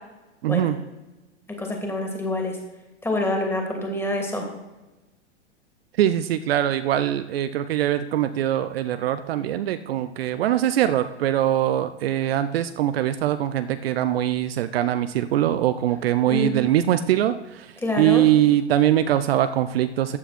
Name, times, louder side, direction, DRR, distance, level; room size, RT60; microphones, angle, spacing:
voice 1, 0.4-0.8 6.0-20.2, right 12 dB, 55° right, 11 dB, 0.7 m, -22 dB
voice 2, 1.6-2.6 3.0-4.5 16.2-16.6 17.8-18.2, left 1 dB, 5° left, 2 dB, 2.8 m, -26 dB
14.5 x 9.0 x 4.3 m, 1.1 s
hypercardioid pair, 110°, 35 cm